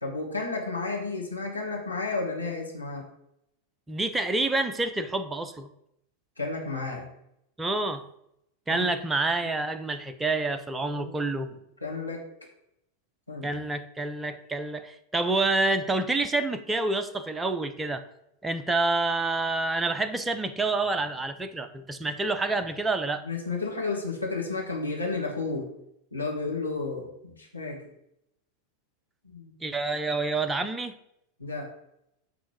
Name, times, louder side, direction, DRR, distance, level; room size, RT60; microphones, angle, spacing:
voice 1, 0.0-3.0 6.4-7.1 8.7-8.8 9.4-9.5 10.8-11.1 11.4-11.5 11.8-12.3 13.3-13.5 23.2-25.7 26.1-27.8 29.2-29.5 31.4-31.7, left 3 dB, 85° left, -2 dB, 2.0 m, -32 dB
voice 2, 3.9-5.7 7.6-8.0 8.7-11.5 13.4-18.0 18.4-23.2 29.6-30.9, right 2 dB, 10° right, 9 dB, 0.7 m, -28 dB
8.7 x 3.8 x 6.9 m, 0.79 s
figure-of-eight pair, 90°, 0 cm